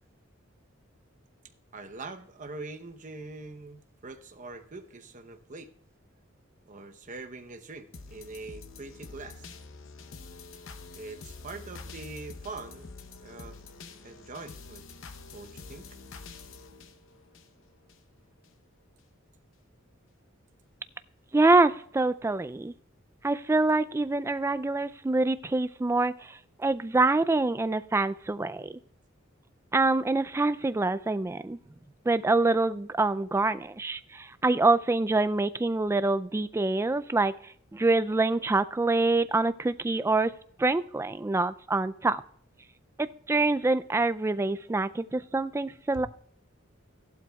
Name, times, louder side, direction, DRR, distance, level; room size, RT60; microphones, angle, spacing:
voice 1, 1.7-5.7 6.7-9.5 10.9-12.9 13.2-13.6 14.0-14.8 15.3-16.0 45.9-46.1, right 3 dB, 40° right, 6 dB, 0.8 m, -43 dB
sound 1, 7.9-18.0 18.4-18.5, left 3 dB, 70° left, 0.8 m, -46 dB
voice 2, 21.3-22.7 23.2-28.7 29.7-31.6 32.1-40.3 40.6-42.2 43.0-46.1, right 2 dB, 15° right, 13 dB, 0.3 m, -26 dB
15.5 x 11.5 x 2.3 m, 0.63 s
head